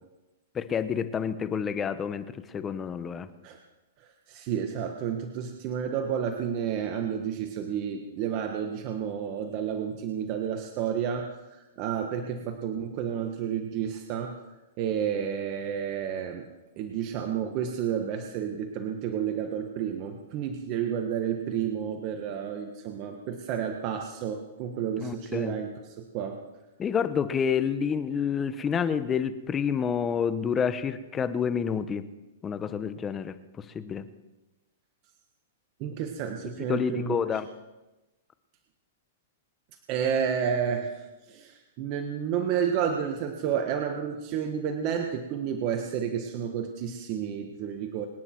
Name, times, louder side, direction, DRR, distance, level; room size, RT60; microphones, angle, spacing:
voice 1, 0.5-3.3 25.0-25.6 26.8-32.1 32.4-34.1 36.7-37.5, left 7 dB, 20° left, 12 dB, 1.0 m, -29 dB
voice 2, 4.0-14.4 14.8-16.5 16.8-26.4 35.8-37.4 39.9-48.1, right 8 dB, 40° right, 4 dB, 1.5 m, -31 dB
26.0 x 9.8 x 4.6 m, 1.1 s
hypercardioid pair, 140°, 0 cm